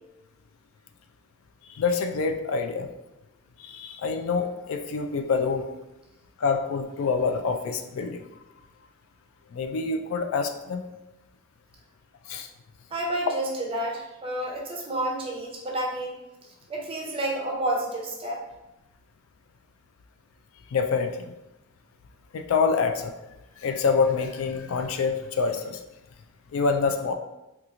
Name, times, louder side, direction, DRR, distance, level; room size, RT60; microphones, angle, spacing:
voice 1, 1.7-2.9 3.6-5.7 6.4-8.3 9.5-10.8 12.3-12.5 20.7-21.2 22.3-23.1 23.6-25.8 26.5-27.1, left 5 dB, 80° left, 6 dB, 0.3 m, -26 dB
voice 2, 12.9-16.1 16.7-18.4, right 1 dB, 25° right, -1 dB, 0.6 m, -30 dB
2.9 x 2.3 x 3.7 m, 0.97 s
head